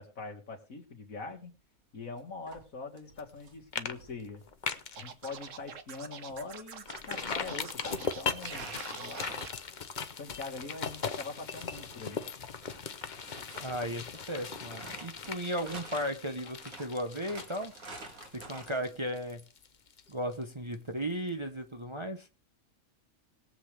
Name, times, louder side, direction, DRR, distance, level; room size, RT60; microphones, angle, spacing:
voice 1, 0.0-1.5 1.9-4.4 5.0-9.5 10.2-12.3, left 3 dB, 75° left, 1 dB, 2.5 m, -43 dB
sound 1, 2.2-2.3 2.5-4.9 5.1-5.3 5.6-5.8 6.2-7.3 7.7-7.8 8.4-18.8, right 2 dB, 85° right, 2.5 m, -50 dB
sound 2, 3.2-3.4 3.7-3.9 4.2-5.0 5.5-5.6 6.0-6.1 6.9-20.4 20.7-20.8, left 6 dB, 40° left, 0.8 m, -39 dB
Scratching (performance technique), 4.9-9.5, right 7 dB, 65° right, 1.3 m, -45 dB
voice 2, 13.6-17.7 18.3-19.4 20.1-22.3, equal, 25° right, 5 dB, 0.8 m, -35 dB
21.0 x 7.6 x 3.4 m, 0.33 s
omnidirectional pair, 1.4 m